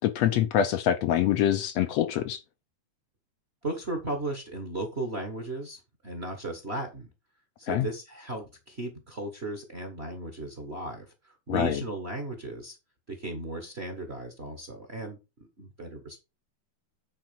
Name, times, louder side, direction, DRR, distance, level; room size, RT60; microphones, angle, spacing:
voice 1, 0.0-2.4 7.7-7.9 11.5-11.8, left 10 dB, 75° left, 1.8 m, -25 dB
voice 2, 3.6-7.1 7.6-12.8 13.1-16.2, right 2 dB, 30° right, 1.4 m, -36 dB
9.0 x 4.3 x 5.9 m
omnidirectional pair, 3.3 m